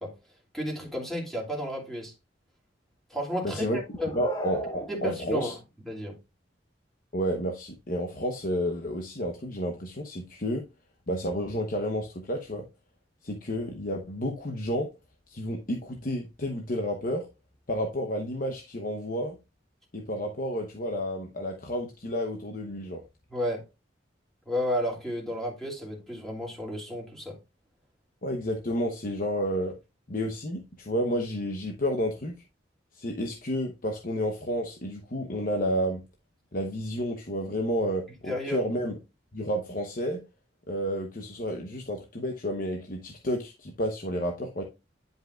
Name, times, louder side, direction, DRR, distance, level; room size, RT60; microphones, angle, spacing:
voice 1, 0.5-2.1 3.1-4.1 4.9-5.6 5.9-6.1 23.3-23.6 24.5-27.4 38.3-38.6, equal, ahead, 2.6 m, -32 dB
voice 2, 3.4-3.8 4.1-5.6 7.1-10.6 11.1-12.6 13.2-14.9 15.3-17.3 17.7-19.4 19.9-23.0 28.2-29.7 30.1-32.4 32.9-36.0 36.5-38.9 39.3-40.2 40.7-44.6, equal, 50° left, 0.9 m, -31 dB
sound 1, 3.9-5.6, right 1 dB, 25° left, 1.3 m, -39 dB
10.5 x 5.4 x 2.4 m
head